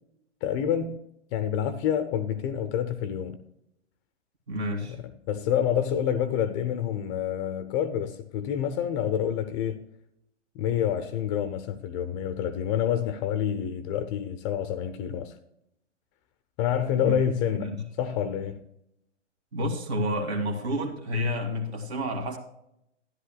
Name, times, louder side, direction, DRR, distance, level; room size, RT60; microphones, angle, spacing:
voice 1, 0.4-1.0 1.3-3.4 4.9-9.8 10.5-15.3 16.6-18.6, left 9 dB, 25° left, 0.5 m, -28 dB
voice 2, 4.5-5.0 16.9-17.2 17.6-17.8 19.5-22.4, equal, 60° right, 2.3 m, -30 dB
13.0 x 11.0 x 2.2 m
figure-of-eight pair, 110°, 37 cm